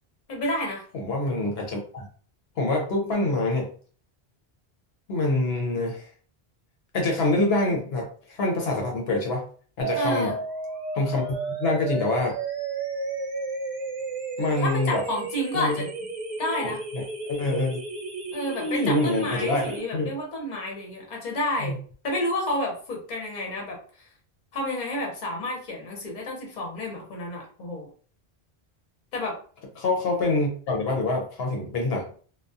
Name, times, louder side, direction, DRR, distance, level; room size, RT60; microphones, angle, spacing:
voice 1, 0.3-0.8 9.9-10.4 14.6-16.1 16.4-16.8 18.3-21.8 22.0-23.8 24.5-27.9 29.1-29.4, left 1 dB, 50° left, -1 dB, 0.9 m, -30 dB
voice 2, 0.9-2.1 2.6-3.7 5.1-6.1 6.9-9.4 9.8-10.3 10.9-12.4 14.4-15.0 15.5-15.7 16.6-17.8 18.6-19.6 19.9-20.1 21.6-21.7 29.8-32.1, left 2 dB, 75° left, 0 dB, 0.9 m, -26 dB
sound 1, 9.8-19.8, right 3 dB, 50° right, 0.8 m, -33 dB
2.3 x 2.2 x 2.6 m, 0.43 s
omnidirectional pair, 1.0 m